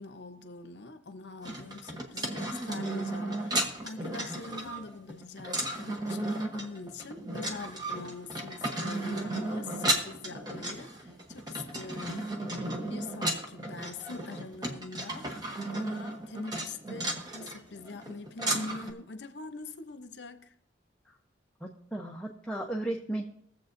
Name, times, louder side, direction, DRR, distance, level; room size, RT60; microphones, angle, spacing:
voice 1, 0.0-12.4 12.9-15.3 15.7-20.5, left 3 dB, 65° left, 0.7 m, -43 dB
sound 1, 1.4-18.9, right 1 dB, 20° right, 1.0 m, -34 dB
voice 2, 21.6-23.2, right 1 dB, 5° left, 0.6 m, -35 dB
22.0 x 7.5 x 2.6 m
head